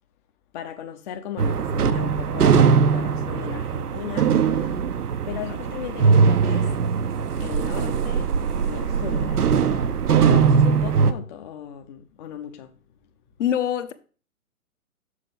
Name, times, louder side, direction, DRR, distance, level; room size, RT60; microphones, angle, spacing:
voice 1, 0.5-4.8 5.3-6.7 7.4-9.9 10.3-12.7, left 9 dB, 30° left, 0.7 m, -37 dB
sound 1, 1.4-11.1, right 6 dB, 80° right, 0.8 m, -20 dB
voice 2, 13.4-13.9, left 10 dB, 50° left, 1.0 m, -24 dB
6.8 x 5.7 x 5.1 m
figure-of-eight pair, 130°, 45 cm